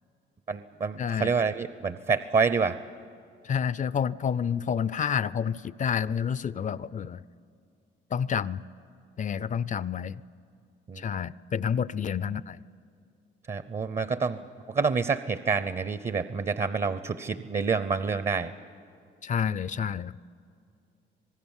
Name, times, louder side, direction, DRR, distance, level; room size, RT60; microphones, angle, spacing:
voice 1, 0.5-2.8 10.9-11.0 13.5-14.4 14.7-18.5, right 5 dB, 35° right, 13 dB, 0.7 m, -27 dB
voice 2, 1.0-1.3 3.4-7.2 8.1-8.6 9.2-10.2 11.0-12.6 19.2-20.2, left 7 dB, 40° left, 19 dB, 0.5 m, -29 dB
26.5 x 19.0 x 7.3 m, 2.5 s
cardioid pair, 90°, 20 cm